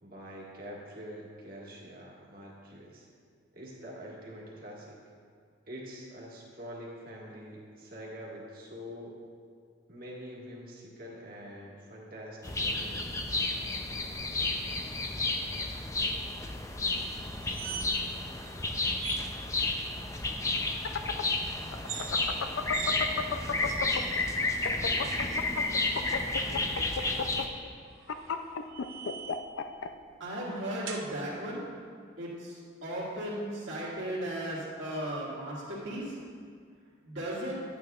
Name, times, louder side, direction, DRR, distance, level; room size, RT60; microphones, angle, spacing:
voice 1, 0.0-3.1 3.5-5.0 5.6-9.2 9.9-13.5 26.4-26.8, equal, 45° right, -4 dB, 1.7 m, -45 dB
sound 1, 12.4-27.5, left 2 dB, 15° left, 0.5 m, -32 dB
sound 2, 17.2-18.1 18.4-18.6 19.0-19.2 21.7-22.1 22.7-23.0 23.7-24.2 25.2-26.0 27.9-29.5 30.9-31.1, right 6 dB, 85° right, 0.8 m, -42 dB
sound 3, 20.6-24.2 24.5-29.9, left 6 dB, 80° left, 0.4 m, -33 dB
voice 2, 30.2-31.6 32.2-36.2 37.0-37.6, right 1 dB, 70° right, -8 dB, 2.1 m, -36 dB
11.0 x 9.0 x 2.4 m, 2.1 s
head